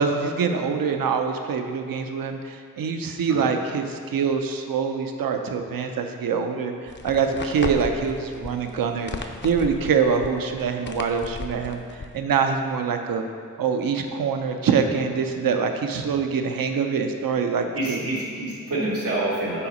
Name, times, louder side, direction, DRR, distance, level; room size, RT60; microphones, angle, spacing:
voice 1, 0.0-11.8 12.1-13.2 13.6-18.0, right 6 dB, 75° right, 5 dB, 0.6 m, -24 dB
sound 1, 6.9-12.2, left 3 dB, 30° left, 0.6 m, -36 dB
voice 2, 17.7-19.7, right 2 dB, 90° right, -8 dB, 1.4 m, -27 dB
5.7 x 4.0 x 5.2 m, 2.1 s
cardioid pair, 45°, 35 cm